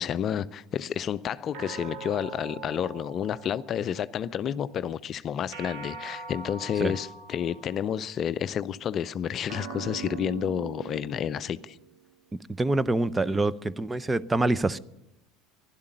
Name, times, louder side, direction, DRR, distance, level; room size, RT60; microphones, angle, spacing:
voice 1, 0.0-11.8, left 9 dB, 45° left, 0.5 m, -30 dB
sound 1, 1.5-4.1 5.5-8.1 9.5-12.1, right 5 dB, 65° right, 1.7 m, -42 dB
voice 2, 12.6-14.8, right 2 dB, 15° right, 0.6 m, -25 dB
12.0 x 11.5 x 9.1 m
hypercardioid pair, 75°, 0 cm